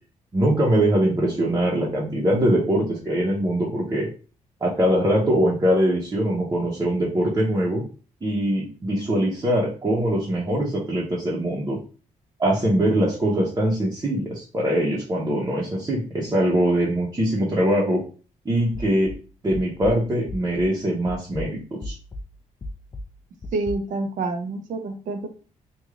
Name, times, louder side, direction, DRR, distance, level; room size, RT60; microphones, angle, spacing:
voice 1, 0.3-4.1 4.6-7.8 8.2-11.8 12.4-18.0 18.4-19.1 19.4-21.9, right 1 dB, 25° right, -5 dB, 1.0 m, -22 dB
sound 1, 18.7-20.8 21.1-23.7, left 1 dB, 25° left, 0.5 m, -36 dB
voice 2, 23.5-25.3, right 3 dB, 75° right, 6 dB, 0.8 m, -27 dB
3.2 x 2.6 x 3.7 m, 0.36 s
cardioid pair, 125°, 13 cm